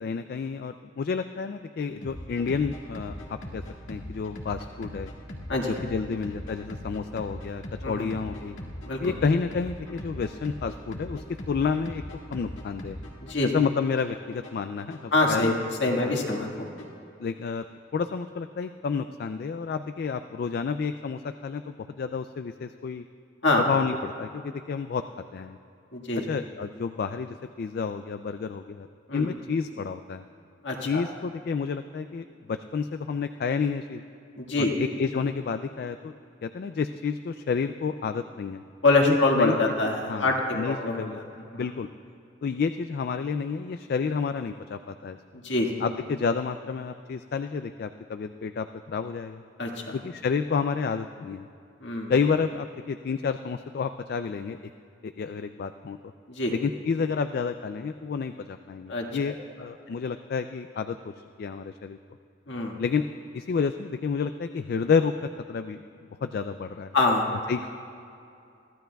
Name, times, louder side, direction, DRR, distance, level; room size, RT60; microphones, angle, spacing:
voice 1, 0.0-3.6 3.9-5.1 5.6-8.6 9.0-12.0 12.3-13.0 13.4-15.5 16.0-16.2 17.2-17.6 17.9-23.1 23.5-25.0 25.3-25.6 26.2-28.9 29.1-30.2 30.8-34.0 34.6-36.1 36.4-38.6 39.0-39.6 40.1-41.2 41.5-41.9 42.4-45.2 45.8-49.4 49.9-51.5 52.1-54.7 55.0-56.0 56.5-62.0 62.8-63.0 63.3-65.8 66.2-66.9 67.5-67.7, left 5 dB, 50° left, 8 dB, 0.3 m, -30 dB
sound 1, 2.0-17.0, equal, 90° left, 1.8 m, -41 dB
voice 2, 15.1-15.5 15.8-16.7 23.4-23.6 25.9-26.3 29.1-29.3 30.6-31.0 34.4-34.7 38.8-41.2 41.5-41.6 45.4-45.8 49.6-50.0 51.8-52.1 56.3-56.5 58.9-59.3 62.5-62.8 66.9-67.3, left 2 dB, 65° left, 0 dB, 1.8 m, -25 dB
23.0 x 15.0 x 2.3 m, 2.5 s
head